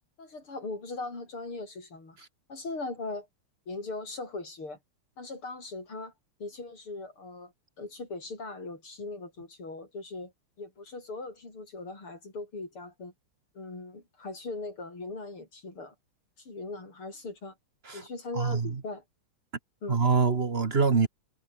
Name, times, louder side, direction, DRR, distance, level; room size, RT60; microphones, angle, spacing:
voice 1, 0.2-2.2 2.5-3.3 3.7-4.8 5.2-6.1 6.4-7.5 7.8-10.3 10.6-13.1 13.5-15.9 16.4-17.5 17.9-19.0 19.8-20.0, left 3 dB, 75° left, 7.7 m, -39 dB
voice 2, 18.3-18.8 19.9-21.1, right 5 dB, 35° right, 1.3 m, -25 dB
omnidirectional pair, 2.4 m